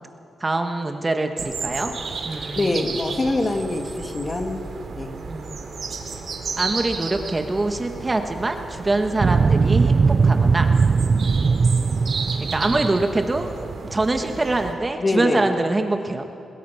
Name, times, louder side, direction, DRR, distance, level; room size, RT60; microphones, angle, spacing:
voice 1, 0.4-2.9 5.3-5.6 6.6-10.8 12.4-13.5 13.9-16.3, right 2 dB, 25° right, 5 dB, 1.4 m, -24 dB
sound 1, 1.4-14.7, right 4 dB, 65° right, 2.6 m, -33 dB
voice 2, 2.6-4.6 4.9-5.1 15.0-15.4, left 2 dB, 30° left, 4 dB, 2.1 m, -24 dB
sound 2, 9.2-14.0, right 4 dB, 45° right, 0.4 m, -19 dB
21.5 x 21.0 x 5.8 m, 2.5 s
cardioid pair, 95°, 0 cm